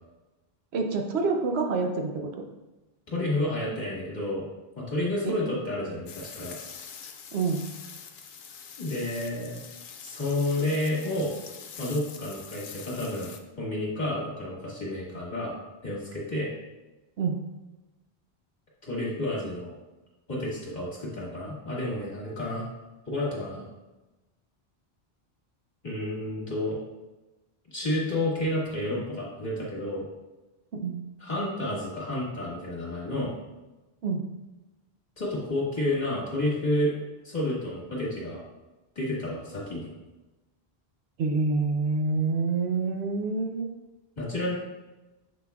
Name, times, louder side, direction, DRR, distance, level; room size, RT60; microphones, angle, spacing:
voice 1, 0.7-2.1 5.2-5.3 7.3-7.6 17.2-17.4 30.8-31.0 34.0-34.2 41.2-43.7, right 4 dB, 80° right, 3 dB, 1.0 m, -27 dB
voice 2, 3.1-4.5 4.7-6.6 8.8-9.6 10.0-11.3 11.8-13.3 13.6-15.5 15.8-16.5 18.8-19.7 20.3-22.7 23.1-23.6 25.8-26.8 27.7-30.0 31.2-33.3 35.2-36.9 37.2-38.4 39.0-39.9 44.2-44.5, left 1 dB, 45° left, -5 dB, 1.9 m, -30 dB
sound 1, 6.1-13.4, left 6 dB, 60° left, 0.7 m, -44 dB
7.4 x 5.9 x 2.3 m, 1.1 s
omnidirectional pair, 1.1 m